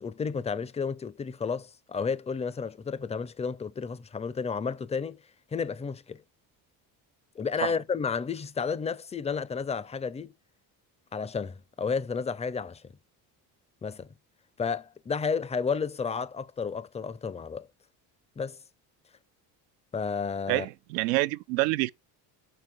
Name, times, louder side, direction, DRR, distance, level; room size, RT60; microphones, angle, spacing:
voice 1, 0.0-5.2 5.5-6.2 7.3-10.3 11.1-12.9 13.8-14.1 14.6-17.7 18.4-18.6 19.9-20.7, left 5 dB, 15° left, 0.5 m, -32 dB
voice 2, 20.5-21.9, right 20 dB, 90° right, 0.6 m, -27 dB
6.7 x 4.2 x 5.9 m
supercardioid pair, 75°, 49 cm